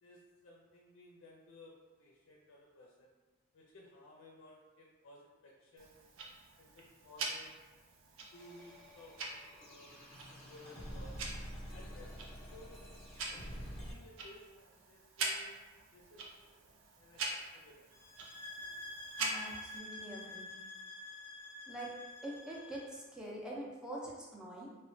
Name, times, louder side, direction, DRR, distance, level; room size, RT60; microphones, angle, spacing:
voice 1, 0.0-3.1 3.5-6.1 6.6-7.6 8.3-11.2 11.7-12.8 13.3-15.6 15.9-17.9, left 1 dB, 85° left, -3 dB, 0.4 m, -58 dB
Tick-tock, 5.8-19.8, right 3 dB, 85° right, 0.4 m, -45 dB
sound 1, 8.3-13.9, equal, 35° left, 0.7 m, -48 dB
sound 2, 17.9-23.0, left 2 dB, 40° right, 1.0 m, -48 dB
voice 2, 19.2-20.6 21.7-21.9 22.2-24.7, right 1 dB, 5° right, -4 dB, 0.4 m, -45 dB
2.9 x 2.1 x 2.5 m, 1.2 s
head